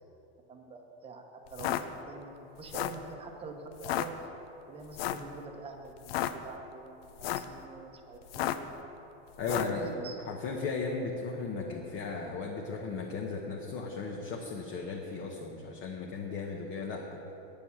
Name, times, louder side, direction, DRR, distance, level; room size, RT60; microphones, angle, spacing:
voice 1, 0.5-1.2 1.5-4.3 4.7-8.7 9.5-10.2, right 3 dB, 20° right, 3 dB, 1.0 m, -45 dB
sound 1, 1.5-1.8 2.6-3.0 3.8-4.1 4.9-5.3 6.0-6.3 7.1-7.5 8.3-8.7 9.4-9.8, left 13 dB, 65° left, 0.7 m, -32 dB
voice 2, 9.4-9.9 10.2-17.2, left 4 dB, 40° left, -1 dB, 1.1 m, -36 dB
9.5 x 6.9 x 8.5 m, 3.0 s
supercardioid pair, 155°, 32 cm